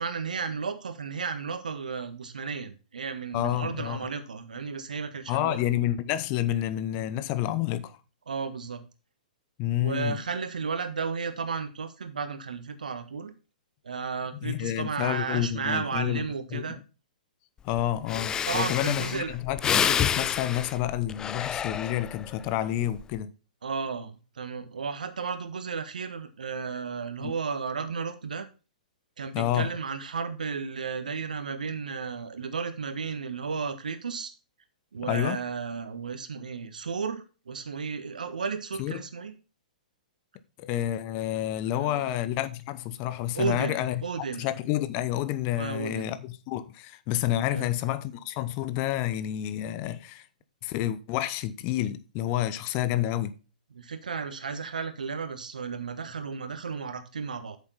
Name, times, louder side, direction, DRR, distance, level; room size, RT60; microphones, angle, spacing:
voice 1, 0.0-5.6 8.3-8.8 9.8-13.3 13.8-16.8 18.5-19.4 23.6-28.5 29.2-34.3 34.9-39.3 41.8-42.1 43.3-44.5 45.6-46.1 47.5-47.7 53.7-57.6, right 5 dB, 70° right, 1.5 m, -33 dB
voice 2, 3.3-4.1 5.3-8.0 9.6-10.2 14.4-16.2 16.5-16.6 17.6-23.3 27.2-27.3 29.3-29.7 35.0-35.4 38.8-39.0 40.6-44.0 44.4-50.2 50.6-53.4, left 13 dB, 35° left, 0.8 m, -29 dB
Breathing, 17.7-17.8 18.1-22.3 22.8-23.2, left 8 dB, 15° left, 0.4 m, -29 dB
8.8 x 7.2 x 4.0 m
figure-of-eight pair, 115°, 4 cm